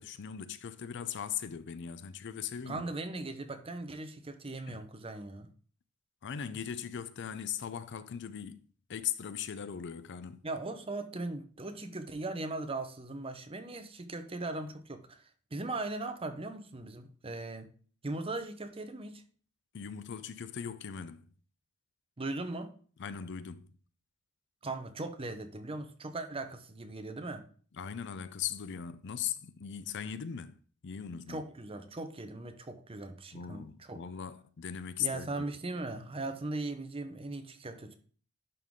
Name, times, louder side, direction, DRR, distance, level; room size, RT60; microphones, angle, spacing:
voice 1, 0.0-2.9 4.7-4.8 6.2-10.4 19.7-21.3 23.0-23.7 27.8-31.4 33.3-35.3, left 8 dB, 55° left, 0.5 m, -39 dB
voice 2, 2.7-5.5 10.4-17.7 18.0-19.2 22.2-22.7 24.6-27.4 31.3-34.0 35.0-38.0, right 2 dB, 25° right, 0.7 m, -39 dB
11.0 x 3.8 x 3.7 m
head